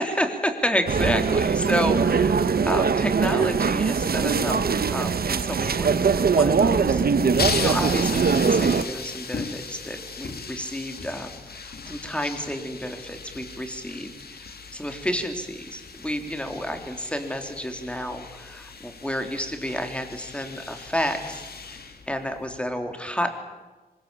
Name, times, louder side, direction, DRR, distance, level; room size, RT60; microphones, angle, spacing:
voice 1, 0.0-4.6 4.9-7.0 7.5-21.8 22.1-23.4, equal, 5° left, 5 dB, 3.4 m, -30 dB
sound 1, 0.9-8.8, right 5 dB, 75° right, 1.1 m, -22 dB
sound 2, 7.2-22.6, left 4 dB, 80° left, 2.5 m, -36 dB
24.0 x 21.5 x 8.8 m, 1.3 s
wide cardioid pair, 85°, 16 cm